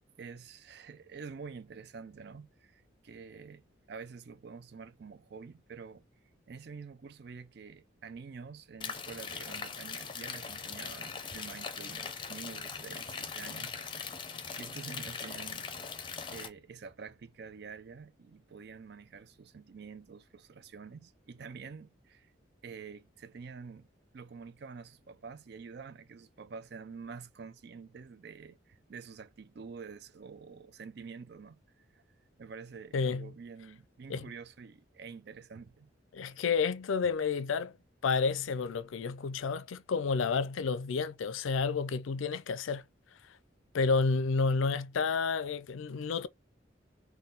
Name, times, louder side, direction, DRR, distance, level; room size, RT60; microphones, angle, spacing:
voice 1, 0.2-3.6 3.9-6.0 6.5-14.0 14.6-15.7 16.3-22.3 22.6-23.9 24.1-32.0 32.4-35.9, right 5 dB, 55° right, 0.4 m, -47 dB
sound 1, 8.8-16.5, left 6 dB, 25° left, 0.6 m, -40 dB
voice 2, 32.9-33.3 34.1-34.3 36.1-37.8 38.0-42.8 43.7-46.3, left 4 dB, 85° left, 0.4 m, -30 dB
3.9 x 2.2 x 3.8 m
head